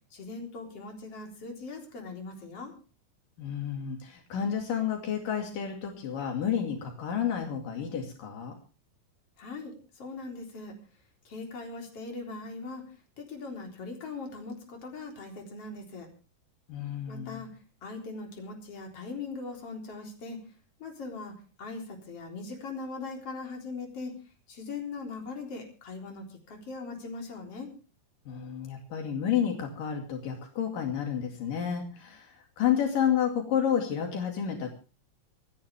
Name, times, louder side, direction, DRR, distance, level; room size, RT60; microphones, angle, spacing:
voice 1, 0.1-2.7 9.4-10.7 11.2-12.8 13.2-16.1 17.1-17.5 17.8-20.4 20.8-21.3 21.6-24.1 24.5-27.7, left 3 dB, 45° left, 2 dB, 4.7 m, -40 dB
voice 2, 3.4-8.6 16.7-17.4 28.3-34.7, left 8 dB, 75° left, 3 dB, 4.0 m, -30 dB
27.0 x 10.5 x 3.5 m, 0.36 s
omnidirectional pair, 3.9 m